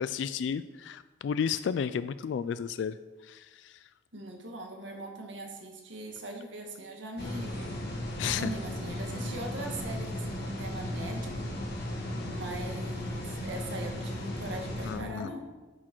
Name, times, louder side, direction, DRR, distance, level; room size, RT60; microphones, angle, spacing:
voice 1, 0.0-3.0 3.2-3.8 8.2-8.5 14.8-15.3, left 7 dB, 75° left, 13 dB, 0.3 m, -32 dB
voice 2, 4.1-7.8 8.2-11.6 12.2-15.5, right 1 dB, 85° right, 2 dB, 1.6 m, -41 dB
sound 1, 7.2-15.0, left 1 dB, 60° left, 1.6 m, -36 dB
10.5 x 6.3 x 4.5 m, 1.2 s
head